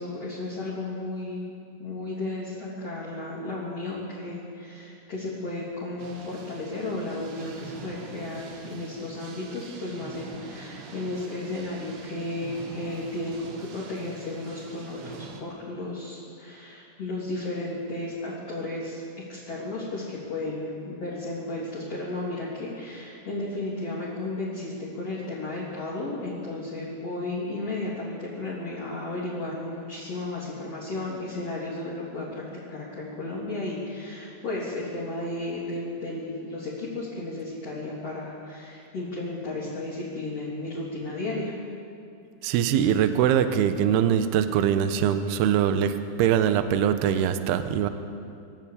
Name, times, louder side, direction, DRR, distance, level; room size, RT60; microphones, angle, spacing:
voice 1, 0.0-1.5 1.8-41.5, left 2 dB, 35° left, -7 dB, 3.6 m, -34 dB
sound 1, 6.0-15.4, right 4 dB, 65° right, 3.0 m, -44 dB
voice 2, 42.4-47.9, right 9 dB, 85° right, 9 dB, 2.3 m, -23 dB
27.0 x 11.0 x 8.7 m, 2.5 s
omnidirectional pair, 5.9 m